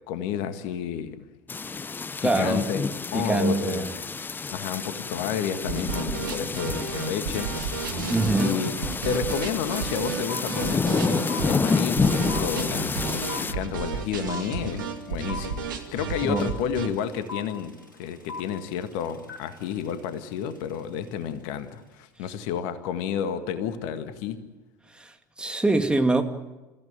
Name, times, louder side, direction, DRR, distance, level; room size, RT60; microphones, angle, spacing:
voice 1, 0.1-1.2 2.2-2.8 3.1-3.9 4.5-8.0 8.4-8.7 9.0-24.4, left 8 dB, 60° left, 10 dB, 1.8 m, -31 dB
sound 1, 1.5-13.5, left 4 dB, 20° left, 0.8 m, -29 dB
voice 2, 2.2-2.7 3.1-3.9 8.1-8.6 16.2-16.5 24.9-26.2, right 2 dB, 10° right, 5 dB, 2.4 m, -24 dB
sound 2, 5.6-16.9, right 5 dB, 75° right, 2.6 m, -32 dB
sound 3, 9.7-9.8 10.0-21.1, left 3 dB, 90° left, 2.8 m, -40 dB
28.5 x 15.5 x 9.1 m, 1.1 s
figure-of-eight pair, 70°, 11 cm